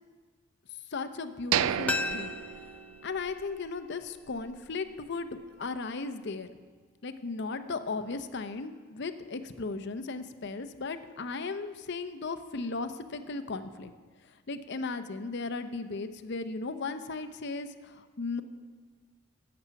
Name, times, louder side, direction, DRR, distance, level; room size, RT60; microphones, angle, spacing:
voice 1, 0.9-2.3 3.0-6.5 7.0-13.9 14.2-18.4, left 3 dB, 55° left, 10 dB, 0.6 m, -36 dB
sound 1, 1.5-3.4 3.8-3.9 4.4-4.6, right 10 dB, 85° right, 0.4 m, -32 dB
sound 2, 1.9-4.7 5.0-5.1, left 3 dB, 5° left, 0.4 m, -37 dB
13.0 x 8.6 x 5.7 m, 1.5 s
head